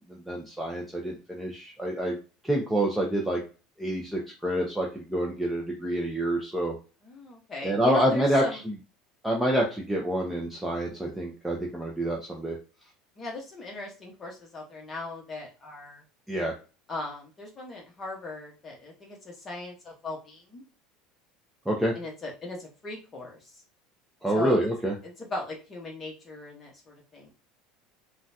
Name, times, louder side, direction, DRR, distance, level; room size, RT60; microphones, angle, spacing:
voice 1, 0.1-2.2 2.4-3.4 3.8-6.7 7.6-8.6 9.2-12.6 16.3-16.5 21.7-21.9 24.2-24.9, right 1 dB, 5° right, -2 dB, 0.5 m, -27 dB
voice 2, 7.0-8.6 13.2-16.0 16.9-20.6 21.9-23.6 24.3-24.6 25.0-27.3, left 2 dB, 20° left, 0 dB, 1.0 m, -39 dB
3.7 x 2.2 x 2.6 m, 0.33 s
cardioid pair, 155°, 0 cm